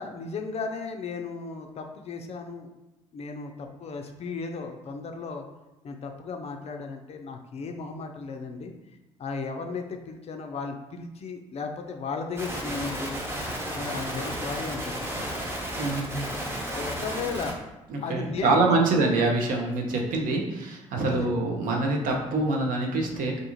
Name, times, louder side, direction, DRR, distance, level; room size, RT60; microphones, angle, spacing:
voice 1, 0.0-2.7 3.1-5.4 5.8-8.7 9.2-13.2 13.7-15.4 16.7-17.6 18.0-18.8 21.0-21.3, left 4 dB, 40° left, 4 dB, 0.4 m, -35 dB
sound 1, 12.4-17.5, equal, 15° right, 0.8 m, -33 dB
voice 2, 15.8-16.3 17.9-23.4, right 2 dB, 60° right, 1 dB, 0.6 m, -25 dB
2.5 x 2.3 x 2.9 m, 1.0 s
hypercardioid pair, 45°, 16 cm